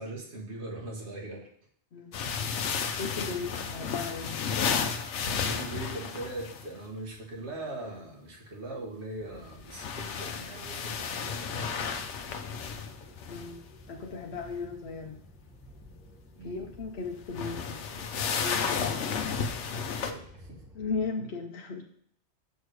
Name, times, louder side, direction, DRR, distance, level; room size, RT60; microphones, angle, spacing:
voice 1, 0.0-1.5 5.4-12.1 16.4-16.7 19.7-20.7, right 2 dB, 75° right, -1 dB, 1.8 m, -41 dB
sound 1, 2.1-6.7 9.5-13.5 17.2-20.1, left 6 dB, 90° left, 1.0 m, -32 dB
voice 2, 3.0-4.4 13.3-13.6 13.9-15.2 16.4-17.8 18.4-18.9 20.7-21.8, left 4 dB, 65° left, 2 dB, 1.0 m, -36 dB
sound 2, 9.2-21.0, left 1 dB, 5° right, 1.0 m, -53 dB
6.4 x 5.7 x 4.7 m, 0.63 s
omnidirectional pair, 1.2 m